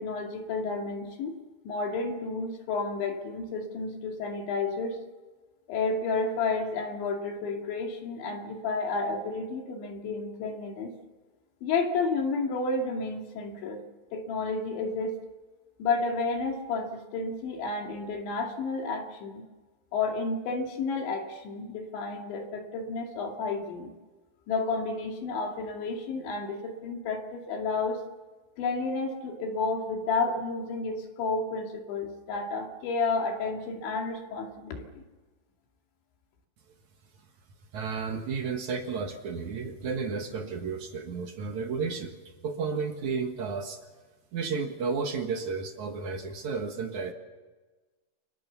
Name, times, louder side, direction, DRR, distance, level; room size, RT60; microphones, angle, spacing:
voice 1, 0.0-1.3 1.7-5.0 5.7-10.9 11.6-13.8 14.1-15.2 15.8-19.4 19.9-23.9 24.5-28.0 28.6-35.0, left 3 dB, 70° left, 3 dB, 4.7 m, -31 dB
voice 2, 37.7-42.2 42.4-43.8 44.3-47.1, right 5 dB, 60° right, 5 dB, 2.1 m, -32 dB
28.5 x 24.0 x 7.1 m, 1.3 s
omnidirectional pair, 5.5 m